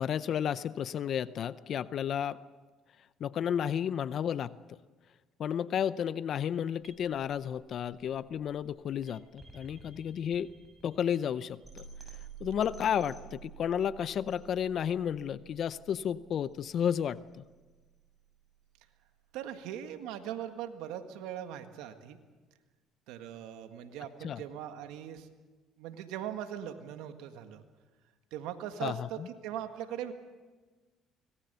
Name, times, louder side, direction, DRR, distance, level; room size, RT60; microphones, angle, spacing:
voice 1, 0.0-2.4 3.2-4.5 5.4-10.5 10.8-11.8 12.4-17.4 24.2-24.4 28.8-29.3, left 9 dB, 55° left, 16 dB, 0.6 m, -32 dB
sound 1, 6.8-18.8, right 7 dB, 15° right, 7.7 m, -52 dB
voice 2, 19.3-22.2 23.1-25.3 25.8-27.6 28.3-30.1, right 10 dB, 85° right, 7 dB, 1.7 m, -40 dB
25.5 x 19.5 x 6.9 m, 1.3 s
supercardioid pair, 85°, 0 cm